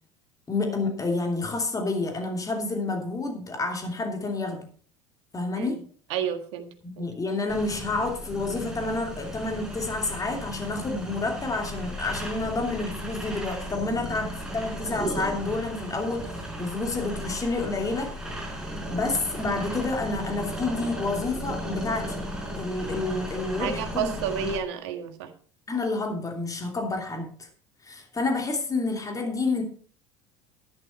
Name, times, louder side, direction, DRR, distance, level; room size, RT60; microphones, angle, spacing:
voice 1, 0.5-4.7 5.3-5.8 7.0-16.3 16.6-18.1 18.9-22.2 22.5-24.1 24.4-24.5 25.7-27.5 27.8-29.6, left 3 dB, 20° left, 4 dB, 2.8 m, -29 dB
voice 2, 6.1-6.7 7.0-7.1 23.6-25.3, right 8 dB, 65° right, 6 dB, 1.8 m, -30 dB
sound 1, 7.5-24.6, equal, 5° right, 5.1 m, -35 dB
11.0 x 11.0 x 4.4 m, 0.43 s
figure-of-eight pair, 70°, 15 cm